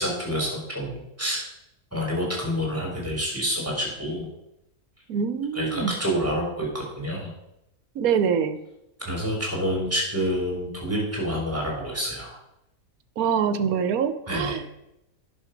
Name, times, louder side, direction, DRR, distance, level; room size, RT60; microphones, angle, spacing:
voice 1, 0.0-1.5 1.9-4.3 5.5-7.3 9.0-12.4 14.3-14.6, equal, 10° right, -2 dB, 3.3 m, -28 dB
voice 2, 5.1-6.0 7.9-8.6 13.2-14.7, right 7 dB, 70° right, 11 dB, 1.2 m, -25 dB
10.5 x 6.1 x 5.1 m, 0.86 s
omnidirectional pair, 1.6 m